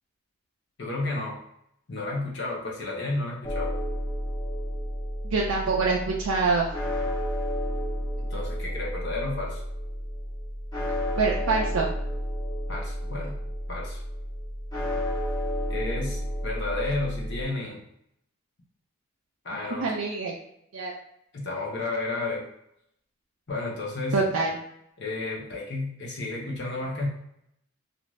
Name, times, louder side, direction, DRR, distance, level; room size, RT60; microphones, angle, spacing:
voice 1, 0.8-1.4 1.9-3.7 8.3-9.6 12.7-13.4 13.7-14.0 15.7-17.8 19.4-19.9 21.3-22.5 23.5-24.2 25.0-27.1, left 2 dB, 60° left, -3 dB, 0.9 m, -32 dB
sound 1, 3.4-17.4, equal, 20° left, 0.9 m, -31 dB
voice 2, 5.2-6.7 11.2-11.9 19.8-20.3 20.7-20.9 24.1-24.6, right 4 dB, 80° right, -2 dB, 0.5 m, -25 dB
2.5 x 2.5 x 3.1 m, 0.76 s
head